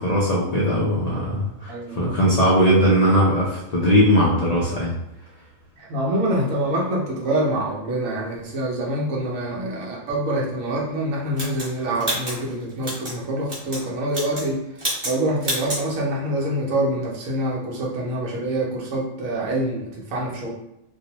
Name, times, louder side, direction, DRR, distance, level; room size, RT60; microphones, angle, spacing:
voice 1, 0.0-4.9, equal, 80° left, -5 dB, 0.3 m, -19 dB
voice 2, 1.7-2.2 5.8-14.6 15.0-20.5, right 1 dB, 80° right, -2 dB, 1.1 m, -25 dB
sound 1, 11.4-13.1 13.5-13.8 14.1-14.5 14.8-15.1 15.4-15.8, equal, 25° right, 1.0 m, -28 dB
2.6 x 2.0 x 2.8 m, 0.87 s
omnidirectional pair, 1.4 m